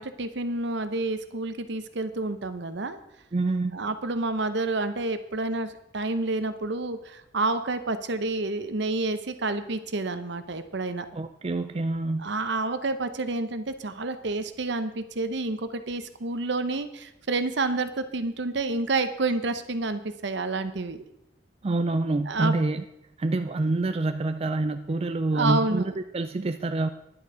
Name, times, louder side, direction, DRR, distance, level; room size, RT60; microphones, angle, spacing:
voice 1, 0.0-3.0 3.7-11.1 12.2-21.0 22.3-22.5 25.3-26.0, right 2 dB, 65° right, 10 dB, 0.9 m, -29 dB
voice 2, 3.3-3.8 11.1-12.2 21.6-22.8 23.2-25.8 26.1-26.9, right 2 dB, 35° right, 8 dB, 0.4 m, -26 dB
10.5 x 9.5 x 5.0 m, 0.85 s
head